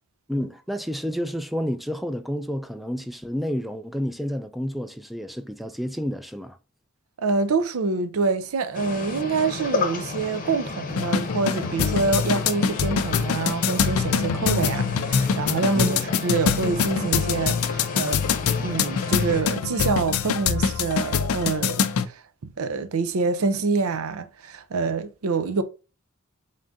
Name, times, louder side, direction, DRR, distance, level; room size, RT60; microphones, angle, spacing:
voice 1, 0.3-6.6 15.7-16.0, equal, ahead, 0.3 m, -30 dB
voice 2, 7.2-18.2 18.6-22.2 22.6-25.6, right 4 dB, 85° right, 0.5 m, -26 dB
sound 1, 8.7-19.4, left 3 dB, 40° left, 0.7 m, -33 dB
sound 2, 10.9-22.1, left 6 dB, 80° left, 0.4 m, -24 dB
3.7 x 3.6 x 2.6 m
head